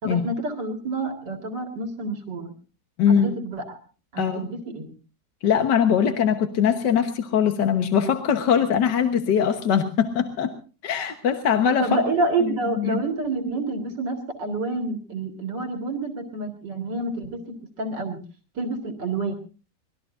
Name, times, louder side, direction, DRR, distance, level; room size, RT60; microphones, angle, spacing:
voice 1, 0.0-2.5 3.1-3.8 4.1-4.9 11.8-18.2 18.5-19.3, right 2 dB, 80° right, 5 dB, 2.7 m, -28 dB
voice 2, 3.0-3.3 4.2-4.5 5.4-10.5 10.8-11.9 12.4-12.5 12.8-13.0, left 7 dB, 80° left, 6 dB, 1.9 m, -21 dB
25.5 x 19.5 x 2.6 m, 0.35 s
omnidirectional pair, 1.8 m